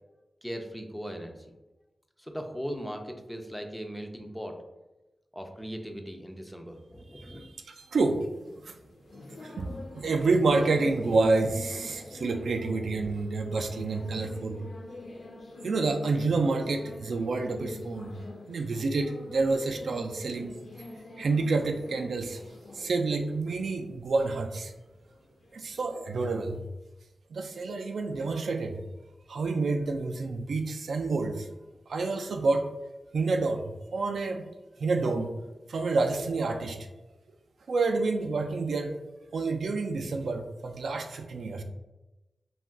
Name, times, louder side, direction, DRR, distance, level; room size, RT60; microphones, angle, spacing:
voice 1, 0.4-1.5 2.2-4.6 5.3-7.5 11.8-11.9, equal, 5° left, 4 dB, 0.3 m, -39 dB
voice 2, 7.2-8.8 9.3-14.6 15.6-18.1 18.5-20.5 21.2-22.4 22.7-24.7 25.5-26.6 27.3-28.8 29.3-31.5 31.9-32.7 33.1-34.5 34.8-35.3 35.7-36.8 37.7-39.0 39.3-41.6, right 3 dB, 80° right, 5 dB, 0.3 m, -28 dB
sound 1, 8.2-26.6, left 2 dB, 60° left, 0.5 m, -45 dB
2.3 x 2.2 x 3.6 m, 1.0 s
wide cardioid pair, 145°, 0 cm